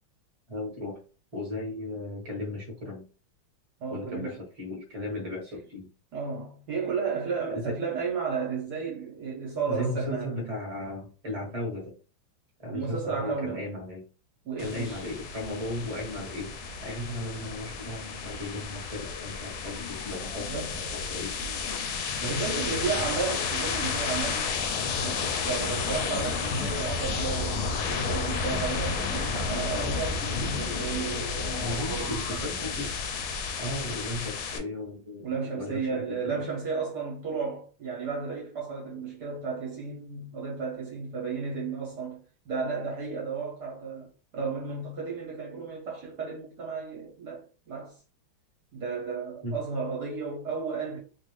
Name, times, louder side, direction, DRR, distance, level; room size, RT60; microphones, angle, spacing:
voice 1, 0.5-1.0 1.3-3.1 3.9-5.9 7.5-7.8 9.7-12.0 12.6-14.0 14.6-20.7 20.9-21.6 22.2-23.1 31.6-32.9 33.6-35.2 35.5-36.4 49.4-49.6, left 1 dB, 25° right, 0.9 m, -36 dB
voice 2, 3.8-4.4 6.1-10.5 12.7-13.7 14.4-15.1 20.4-20.7 22.3-24.5 25.0-32.7 35.2-48.0 48.7-51.0, right 5 dB, 60° right, 1.2 m, -33 dB
sound 1, 14.6-34.6, left 5 dB, 80° left, 1.3 m, -31 dB
3.3 x 2.5 x 3.0 m
omnidirectional pair, 2.3 m